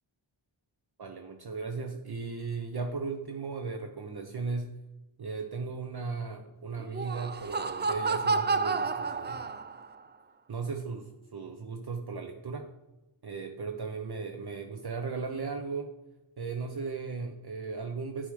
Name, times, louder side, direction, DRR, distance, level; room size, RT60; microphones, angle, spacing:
voice 1, 1.0-4.7 5.2-9.5 10.5-12.7 13.2-15.9 16.4-18.3, right 4 dB, 55° right, 4 dB, 0.7 m, -36 dB
Laughter, 6.8-10.0, right 4 dB, 25° right, 0.3 m, -30 dB
8.3 x 3.5 x 4.9 m, 1.0 s
wide cardioid pair, 55°, 46 cm